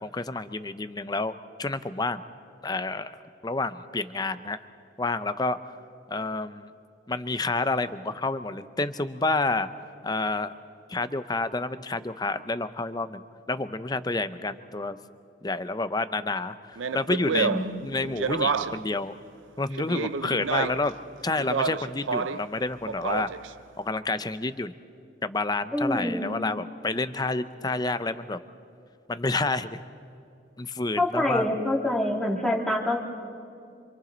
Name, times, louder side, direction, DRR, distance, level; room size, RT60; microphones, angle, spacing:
voice 1, 0.0-1.3 1.6-2.2 2.6-3.2 3.4-4.6 5.0-5.6 6.1-6.7 7.1-9.7 10.0-10.5 10.9-15.0 15.4-17.5 17.8-19.1 19.6-20.9 21.2-23.3 23.8-24.7 25.2-28.4 29.1-29.8 30.6-31.5, left 3 dB, 20° left, 12 dB, 0.6 m, -29 dB
Speech, 16.8-18.9 19.7-20.9 21.4-22.5 22.9-23.5, right 5 dB, 70° right, 0.6 m, -29 dB
voice 2, 17.3-17.7 25.7-26.4 31.0-33.0, left 1 dB, ahead, -2 dB, 2.2 m, -26 dB
27.5 x 26.5 x 4.0 m, 2.6 s
head